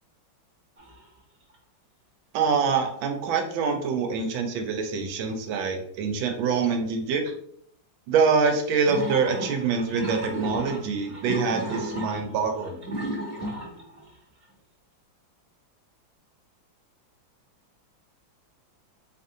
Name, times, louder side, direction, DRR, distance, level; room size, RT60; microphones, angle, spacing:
sound 1, 0.8-1.1 1.5-1.6 8.8-14.1, right 1 dB, 35° right, 1.1 m, -34 dB
voice 1, 2.3-7.3 8.1-12.8, right 5 dB, 85° right, 4 dB, 1.4 m, -25 dB
4.7 x 2.6 x 2.6 m, 0.66 s
omnidirectional pair, 2.2 m